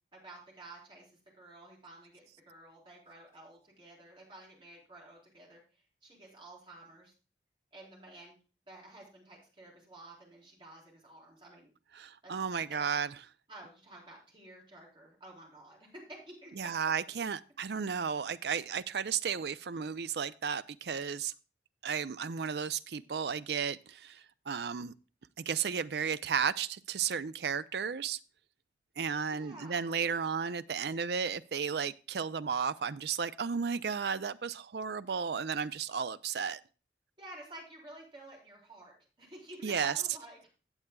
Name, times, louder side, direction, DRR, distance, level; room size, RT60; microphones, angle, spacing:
voice 1, 0.1-5.6 6.0-7.1 7.7-8.4 8.7-11.7 12.2-12.3 12.7-12.8 13.5-16.5 16.8-16.9 29.3-29.9 37.2-40.5, right 2 dB, 30° right, 4.0 m, -51 dB
voice 2, 12.0-13.1 16.6-21.3 21.8-24.9 25.4-28.2 29.0-36.6 39.6-39.9, right 6 dB, 70° right, 0.5 m, -34 dB
16.0 x 8.0 x 2.3 m
head